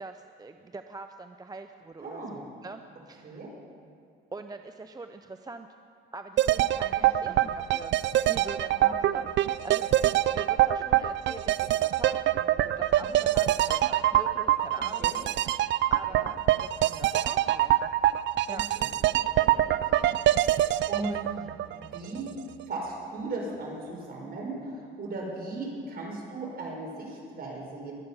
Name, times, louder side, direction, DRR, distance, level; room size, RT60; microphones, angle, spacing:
voice 1, 0.0-3.4 4.3-5.7 6.1-7.9 8.3-15.5 15.9-17.9 18.5-18.7 19.2-19.6 21.0-21.3, right 3 dB, 20° right, 7 dB, 0.5 m, -43 dB
voice 2, 2.0-2.4 3.2-3.5 7.2-7.4 8.7-8.9 12.9-13.1 15.0-15.2 16.1-16.2 18.8-18.9 19.5-20.0 20.9-21.1 21.3-21.4 21.7-22.3 22.7-27.9, right 3 dB, 50° right, -2 dB, 4.6 m, -37 dB
sound 1, 6.4-22.3 22.6-22.7, right 13 dB, 70° right, 0.4 m, -25 dB
22.5 x 8.5 x 5.5 m, 2.3 s
cardioid pair, 90°, 20 cm